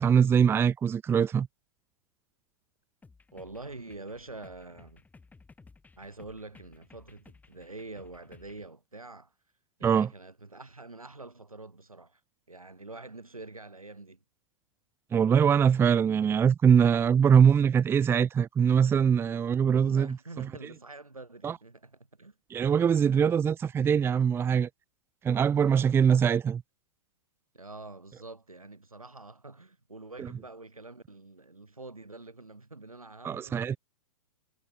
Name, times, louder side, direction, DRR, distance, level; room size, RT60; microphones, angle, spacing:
voice 1, 0.0-1.5 9.8-10.1 15.1-20.5 21.4-21.6 22.5-24.7 25.2-26.6 30.2-30.3 33.2-33.8, right 7 dB, 15° right, 0.7 m, -23 dB
sound 1, 3.0-8.7, left 4 dB, 10° left, 3.6 m, -57 dB
voice 2, 3.3-5.0 6.0-9.3 9.8-12.2 12.5-14.2 19.7-22.3 27.5-33.6, right 3 dB, 90° right, 3.2 m, -46 dB
figure-of-eight pair, 110°, 18 cm